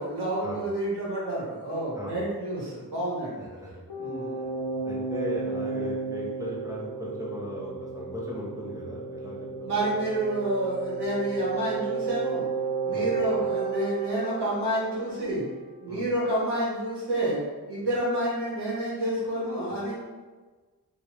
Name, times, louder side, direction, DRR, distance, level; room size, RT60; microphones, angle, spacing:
voice 1, 0.0-3.5 3.9-4.4 9.6-12.5 12.8-15.5 15.8-17.4 17.7-19.9, right 1 dB, 85° right, -7 dB, 1.4 m, -29 dB
voice 2, 3.4-3.7 4.4-4.5 4.8-9.9 12.9-13.1 15.9-16.0, left 1 dB, 10° right, -5 dB, 0.9 m, -37 dB
sound 1, 3.9-15.5, right 4 dB, 80° left, 0.7 m, -33 dB
3.0 x 2.5 x 3.3 m, 1.3 s
wide cardioid pair, 95°, 39 cm